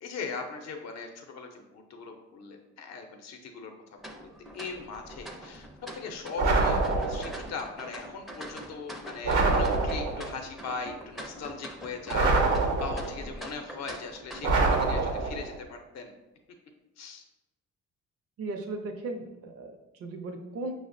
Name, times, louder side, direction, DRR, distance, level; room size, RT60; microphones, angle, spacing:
voice 1, 0.0-3.7 4.1-4.2 4.5-5.7 6.0-16.1 17.0-17.2, left 4 dB, 60° left, 4 dB, 0.6 m, -39 dB
sound 1, 4.0-14.8, equal, ahead, 0.4 m, -44 dB
sound 2, 6.4-7.5 9.2-10.4 12.1-13.3 14.4-15.6, right 3 dB, 85° right, 0.8 m, -25 dB
voice 2, 18.4-20.7, right 2 dB, 50° right, 4 dB, 0.5 m, -37 dB
5.8 x 2.1 x 2.5 m, 1.0 s
cardioid pair, 90°, 30 cm